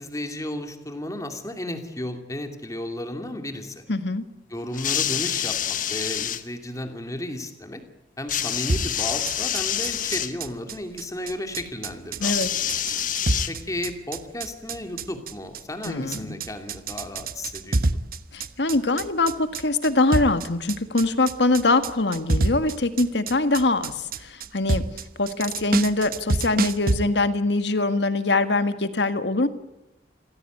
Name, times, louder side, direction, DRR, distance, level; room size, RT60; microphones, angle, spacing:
voice 1, 0.0-3.8 4.5-7.8 8.2-12.7 13.5-17.8, left 1 dB, 20° left, 6 dB, 2.7 m, -34 dB
voice 2, 3.9-4.2 12.2-12.5 15.8-16.4 18.3-24.8 25.2-29.5, left 2 dB, 80° left, 10 dB, 1.8 m, -23 dB
sound 1, 4.7-6.4 8.3-10.3 12.2-13.9 14.9-15.0, left 10 dB, 50° left, 1.3 m, -27 dB
sound 2, 8.7-27.0, right 2 dB, 55° right, 1.0 m, -28 dB
27.0 x 16.5 x 9.3 m, 0.97 s
head